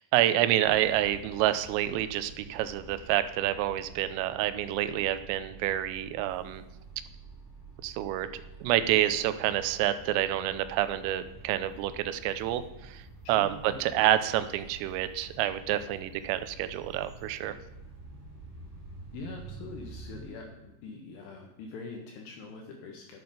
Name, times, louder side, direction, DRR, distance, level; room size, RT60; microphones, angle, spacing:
voice 1, 0.0-6.6 7.8-8.3 8.6-13.0 13.3-17.5, right 13 dB, 85° right, 11 dB, 3.2 m, -28 dB
sound 1, 0.6-20.3, right 3 dB, 5° right, 3.4 m, -48 dB
voice 2, 13.2-13.8 19.1-23.2, left 3 dB, 75° left, 2 dB, 2.5 m, -43 dB
11.0 x 7.8 x 5.2 m, 1.0 s
omnidirectional pair, 6.0 m